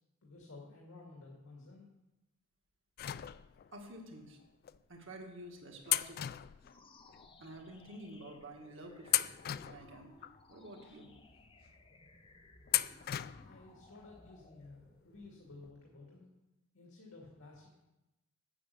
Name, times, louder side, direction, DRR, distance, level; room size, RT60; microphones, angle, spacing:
voice 1, 0.2-1.9 13.4-16.3 16.7-17.8, left 3 dB, 90° left, -2 dB, 2.0 m, -54 dB
sound 1, 3.0-3.8 4.6-4.8 5.9-7.3 7.6-7.7 8.4-8.6 9.1-10.4 10.9-11.0 12.7-13.6 13.9-14.0 15.2-15.3 15.6-15.7, left 14 dB, 45° left, 0.3 m, -36 dB
voice 2, 3.7-4.4 4.9-6.2 7.4-9.3 9.6-10.1 10.5-11.1, right 1 dB, 65° right, 2 dB, 1.8 m, -49 dB
sound 2, 6.6-16.1, left 2 dB, 25° left, 0.7 m, -61 dB
8.6 x 8.4 x 6.8 m, 0.99 s
head